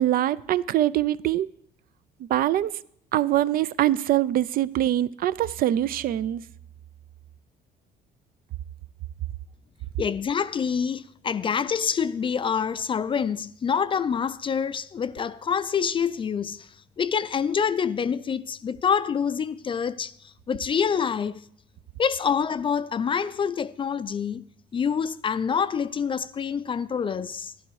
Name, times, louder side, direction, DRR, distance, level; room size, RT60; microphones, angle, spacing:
voice 1, 0.0-1.5 2.3-2.7 3.1-6.4, right 13 dB, 60° right, 0.5 m, -23 dB
voice 2, 10.0-16.7 17.0-20.1 20.5-21.4 22.0-24.5 24.7-27.5, left 7 dB, 30° left, 0.4 m, -26 dB
11.5 x 11.5 x 4.7 m
cardioid pair, 110°, 17 cm